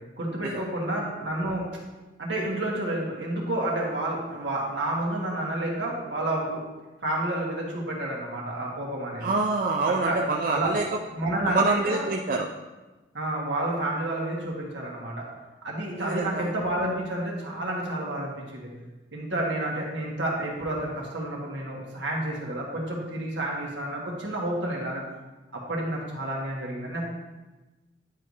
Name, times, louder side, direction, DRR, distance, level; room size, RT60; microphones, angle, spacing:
voice 1, 0.2-1.7 2.2-6.6 7.0-9.3 10.0-10.2 10.5-10.7 11.1-12.0 13.1-15.2 15.6-18.7 19.1-25.0 25.5-27.0, right 1 dB, 80° right, -2 dB, 1.6 m, -30 dB
voice 2, 9.2-10.8 11.5-12.5 16.0-16.5, right 3 dB, 45° right, 1 dB, 0.4 m, -26 dB
10.0 x 4.8 x 2.7 m, 1.1 s
head